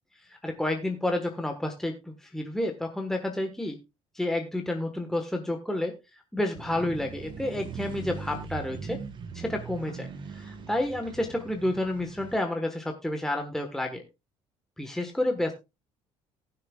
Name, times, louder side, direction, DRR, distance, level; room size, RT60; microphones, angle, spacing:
voice 1, 0.3-3.8 4.1-5.9 6.3-9.0 9.3-10.1 10.3-14.0 14.8-15.5, left 1 dB, 5° left, 3 dB, 1.4 m, -30 dB
sound 1, 6.5-12.4, right 5 dB, 40° right, 1.6 m, -40 dB
18.5 x 6.7 x 2.4 m, 0.25 s
cardioid pair, 115°, 12 cm